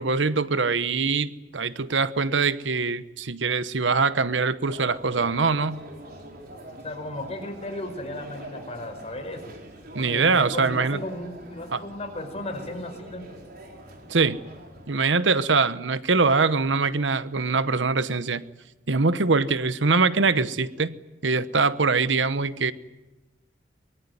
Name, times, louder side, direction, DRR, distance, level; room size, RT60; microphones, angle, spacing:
voice 1, 0.0-5.8 9.9-11.0 11.7-11.8 14.1-14.4 14.9-18.4 18.9-20.9 21.2-22.7, right 4 dB, 85° right, 14 dB, 1.0 m, -23 dB
sound 1, 4.7-14.9, right 1 dB, 55° right, 4.9 m, -44 dB
voice 2, 6.8-9.5 10.0-13.3, left 1 dB, 35° left, 5 dB, 5.0 m, -35 dB
23.5 x 22.0 x 9.7 m, 1.1 s
head